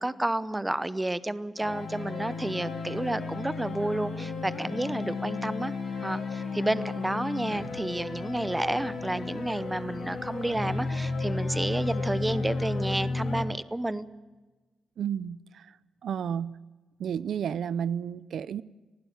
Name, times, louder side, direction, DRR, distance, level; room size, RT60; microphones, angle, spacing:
voice 1, 0.0-5.7 6.0-14.0, right 1 dB, 10° right, 0.8 m, -31 dB
sound 1, 1.6-13.4, left 3 dB, 50° left, 4.5 m, -33 dB
voice 2, 15.0-15.8 16.0-16.6 17.0-18.6, right 8 dB, 70° right, 0.6 m, -32 dB
19.5 x 16.0 x 9.3 m
cardioid pair, 125°, 0 cm